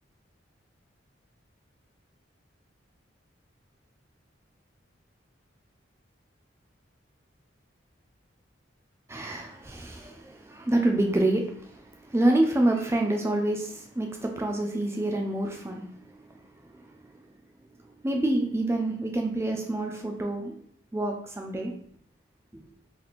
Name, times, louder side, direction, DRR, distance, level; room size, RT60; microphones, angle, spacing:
voice 1, 9.1-16.1 16.7-16.9 18.0-20.5 20.9-21.7, right 1 dB, 15° right, 3 dB, 0.3 m, -27 dB
2.9 x 2.5 x 4.1 m, 0.65 s
head